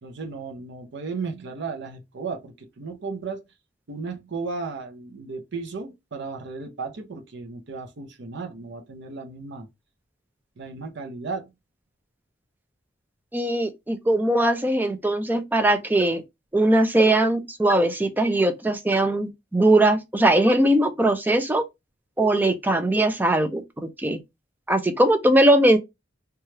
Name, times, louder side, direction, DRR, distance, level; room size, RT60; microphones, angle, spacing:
voice 1, 0.0-3.4 3.9-9.7 10.6-11.5, right 4 dB, 65° right, 0.6 m, -34 dB
voice 2, 13.3-16.2 16.5-21.6 22.2-23.6 24.0-24.2 24.7-25.8, right 1 dB, 10° right, 0.4 m, -20 dB
3.1 x 2.3 x 2.8 m
head